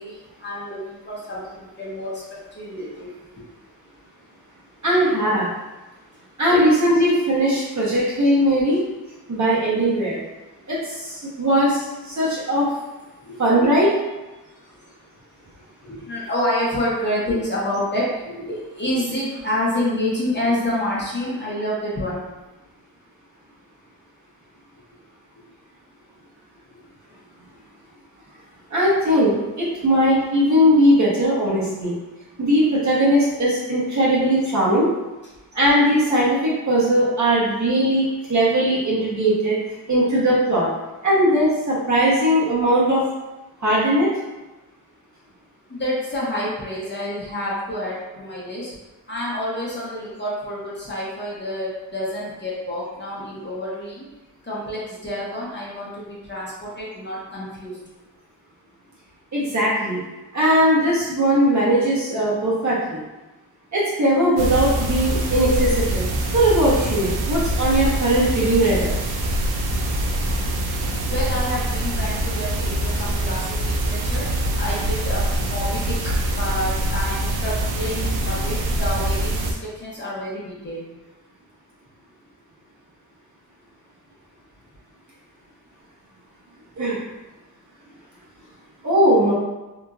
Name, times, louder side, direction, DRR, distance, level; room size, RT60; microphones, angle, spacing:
voice 1, 0.0-3.1 13.2-13.4 15.8-22.2 45.7-48.7 49.1-54.0 54.4-57.8 71.1-74.2 74.6-76.0 76.3-80.9, left 1 dB, 30° left, -7 dB, 0.8 m, -28 dB
voice 2, 4.8-5.5 6.4-8.8 9.3-10.2 10.7-12.7 13.4-13.9 28.7-31.9 32.4-34.9 35.5-39.6 39.9-40.7 41.0-43.0 43.6-44.1 59.3-60.0 60.3-63.0 63.7-66.1 66.3-68.9 86.8-87.0 88.8-89.3, equal, 50° right, -8 dB, 1.1 m, -19 dB
sound 1, 64.4-79.5, right 1 dB, 85° right, 0.5 m, -24 dB
2.9 x 2.6 x 2.4 m, 1.1 s
wide cardioid pair, 100°, 37 cm